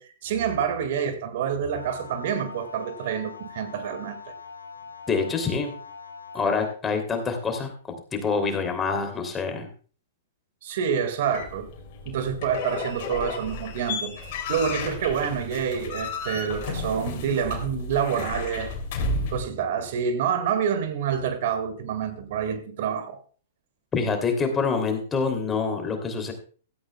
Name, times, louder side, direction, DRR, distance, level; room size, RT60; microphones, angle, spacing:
voice 1, 0.0-4.3 10.6-11.7 12.1-14.2 14.5-18.7 19.3-23.2, right 7 dB, 55° right, 1.9 m, -27 dB
sound 1, 1.7-6.7, left 5 dB, 90° left, 1.8 m, -42 dB
voice 2, 5.1-5.7 6.3-7.7 8.1-9.7 23.9-26.3, left 5 dB, 15° left, 2.8 m, -26 dB
sound 2, 11.3-19.4, left 3 dB, 45° left, 3.2 m, -33 dB
16.5 x 14.0 x 2.2 m
figure-of-eight pair, 110°, 0 cm